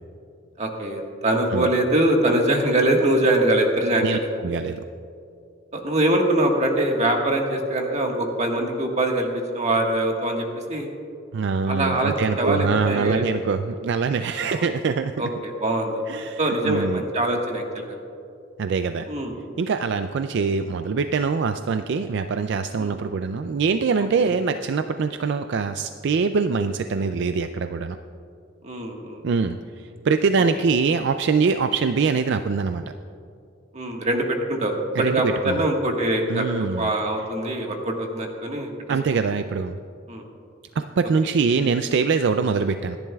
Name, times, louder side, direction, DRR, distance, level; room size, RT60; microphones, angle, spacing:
voice 1, 0.6-4.3 5.7-9.3 9.5-10.4 10.7-10.9 11.7-13.3 14.4-14.7 15.2-16.0 16.4-18.0 19.1-19.3 22.8-22.9 24.2-24.3 28.6-29.2 33.7-36.5 36.8-38.7 40.1-40.2, right 1 dB, 35° right, 1 dB, 1.5 m, -23 dB
voice 2, 4.0-4.8 11.3-15.3 16.1-17.0 18.6-19.1 19.6-28.0 29.2-32.9 34.9-35.6 36.3-36.9 38.9-39.8 40.8-43.0, right 5 dB, 65° right, 9 dB, 0.4 m, -23 dB
27.0 x 10.5 x 2.3 m, 2.5 s
head